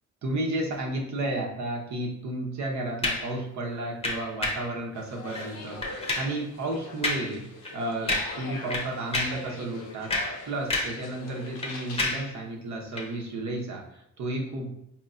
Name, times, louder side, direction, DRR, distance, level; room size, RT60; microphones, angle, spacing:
voice 1, 0.2-7.4 7.7-10.1 10.5-14.7, right 1 dB, 70° right, 0 dB, 1.0 m, -32 dB
sound 1, 3.0-3.3 4.0-4.7 5.3-5.5 5.8-6.4 7.0-7.3 7.6-7.8 8.1-8.4 8.7-9.5 9.9-11.1 11.3-12.3 12.9-13.1, left 2 dB, 20° left, 0.7 m, -30 dB
sound 2, 4.9-12.1, left 3 dB, 85° left, 0.9 m, -43 dB
4.3 x 2.9 x 2.5 m, 0.77 s
cardioid pair, 90°, 30 cm